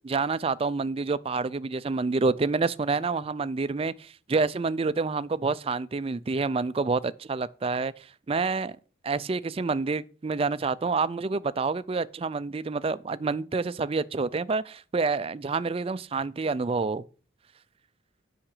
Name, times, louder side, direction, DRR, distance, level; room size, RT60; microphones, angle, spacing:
voice 1, 0.0-8.8 9.0-17.0, right 4 dB, 30° right, 0.4 m, -28 dB
8.8 x 5.7 x 6.6 m
head